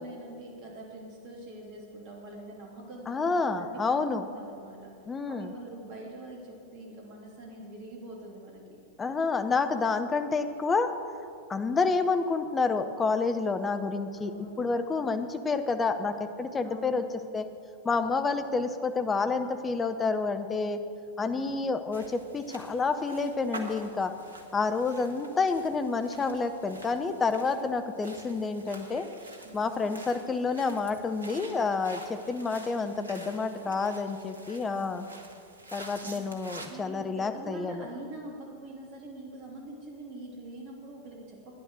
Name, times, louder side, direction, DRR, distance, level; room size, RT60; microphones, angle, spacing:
voice 1, 0.0-4.9 5.3-8.6 14.2-14.6 16.6-17.1 21.2-21.5 29.4-29.7 32.5-33.8 36.0-36.1 36.7-41.6, right 1 dB, 45° right, -2 dB, 3.2 m, -44 dB
voice 2, 3.1-4.2 5.1-5.5 9.0-10.9 11.5-14.3 14.6-17.0 17.3-17.5 17.8-20.8 21.2-24.1 24.5-29.1 29.5-35.1 35.7-37.9, left 4 dB, 15° left, 8 dB, 0.8 m, -29 dB
sound 1, 21.9-36.7, right 2 dB, 75° right, 1.2 m, -48 dB
12.0 x 9.8 x 6.5 m, 2.4 s
figure-of-eight pair, 90°, 0 cm